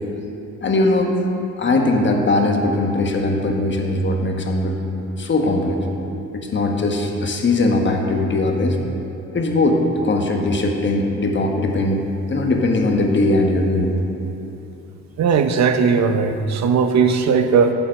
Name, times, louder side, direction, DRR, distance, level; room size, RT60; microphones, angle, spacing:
voice 1, 0.6-1.2 1.6-4.8 5.2-5.8 6.3-8.8 9.3-13.9, left 2 dB, 40° left, 2 dB, 1.4 m, -20 dB
voice 2, 15.2-17.7, right 5 dB, 65° right, 7 dB, 0.9 m, -17 dB
14.0 x 4.6 x 7.6 m, 2.9 s
cardioid pair, 90°, 30 cm